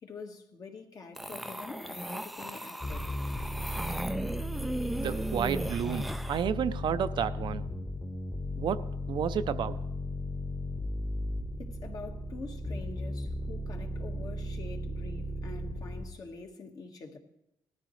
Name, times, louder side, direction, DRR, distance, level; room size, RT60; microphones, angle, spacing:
voice 1, 0.0-3.1 11.6-17.2, left 4 dB, 45° left, 1.5 m, -46 dB
sound 1, 1.2-6.4, equal, ahead, 0.4 m, -37 dB
sound 2, 2.8-16.1, left 1 dB, 20° left, 1.3 m, -36 dB
voice 2, 5.0-7.6 8.6-9.8, right 8 dB, 65° right, 0.5 m, -31 dB
19.0 x 13.5 x 3.2 m
wide cardioid pair, 160°, 9 cm